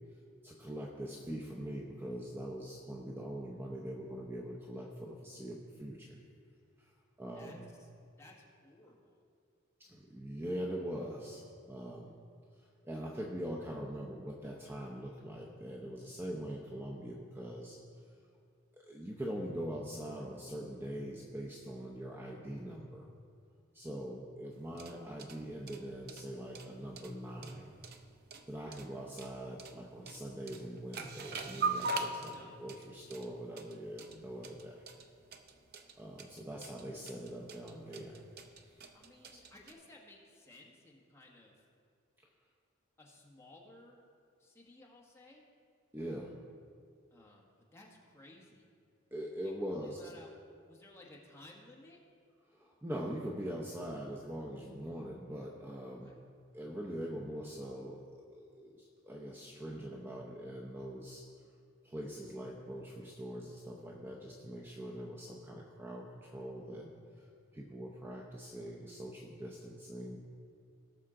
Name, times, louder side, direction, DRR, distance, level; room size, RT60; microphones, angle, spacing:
voice 1, 0.4-6.2 6.8-6.9 7.2-7.7 9.8-12.1 12.8-17.8 18.8-23.1 23.7-27.8 28.5-34.8 36.0-38.2 38.6-38.8 45.9-46.4 49.1-50.0 52.5-56.2 56.5-61.3 61.8-67.3 67.5-70.2, equal, 10° right, -2 dB, 0.7 m, -43 dB
voice 2, 7.3-7.9 8.2-8.3 8.6-9.2 32.3-32.6 38.9-41.6 43.0-44.0 44.4-45.4 47.1-48.7 49.4-50.3 50.7-52.0 56.0-56.2, left 2 dB, 15° left, -3 dB, 1.4 m, -57 dB
sound 1, 24.6-39.7, right 3 dB, 50° right, 0.6 m, -42 dB
18.0 x 6.4 x 3.8 m, 2.2 s
head